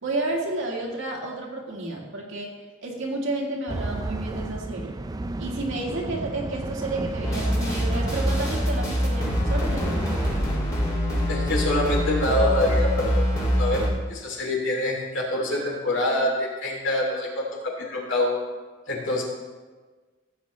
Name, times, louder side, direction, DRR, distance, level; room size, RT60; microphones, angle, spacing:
voice 1, 0.0-2.5 2.8-5.0 5.4-10.1, right 2 dB, 65° right, -1 dB, 2.0 m, -31 dB
sound 1, 3.7-10.4, right 2 dB, 20° right, 0.3 m, -32 dB
sound 2, 7.2-13.9, equal, 15° left, 2.1 m, -24 dB
voice 2, 11.3-13.8 14.1-18.4 18.9-19.2, left 1 dB, 60° left, -2 dB, 2.7 m, -25 dB
16.0 x 8.4 x 3.1 m, 1.3 s
head